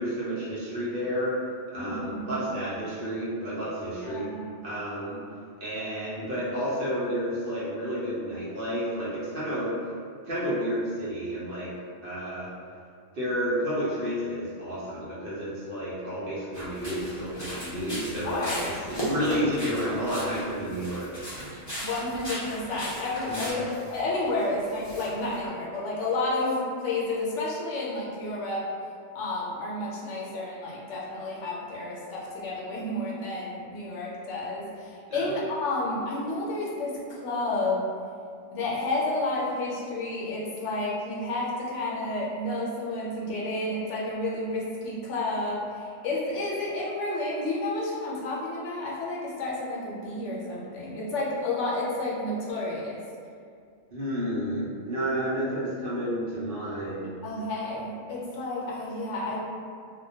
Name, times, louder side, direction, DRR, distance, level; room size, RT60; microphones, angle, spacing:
voice 1, 0.0-1.4 1.7-4.3 4.6-5.2 5.6-9.7 10.2-11.7 12.0-12.5 13.1-21.1 21.4-21.5 23.3-23.4 35.1-35.3 53.9-57.1, equal, 60° right, -9 dB, 0.6 m, -31 dB
voice 2, 1.7-2.6 4.0-4.6 18.2-18.8 21.8-28.7 29.1-37.9 38.5-53.0 57.2-59.4, left 2 dB, 75° left, -5 dB, 0.9 m, -31 dB
sound 1, 16.5-23.5, equal, 15° left, 0.9 m, -38 dB
sound 2, 16.7-25.5, right 1 dB, 30° left, 0.5 m, -40 dB
2.1 x 2.1 x 2.7 m, 2.3 s
omnidirectional pair, 1.2 m